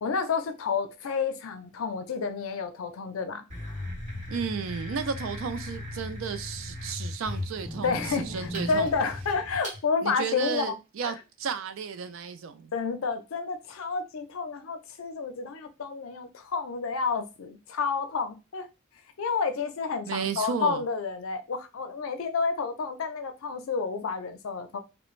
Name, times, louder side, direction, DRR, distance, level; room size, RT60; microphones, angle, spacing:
voice 1, 0.0-3.4 7.8-10.8 11.0-11.1 12.7-18.7 19.2-24.8, left 5 dB, 85° left, 0.5 m, -30 dB
sound 1, 3.5-9.8, left 1 dB, 35° right, 1.4 m, -37 dB
voice 2, 4.3-8.9 10.0-12.7 20.1-20.8, right 6 dB, 75° right, 0.4 m, -33 dB
2.4 x 2.1 x 3.0 m
head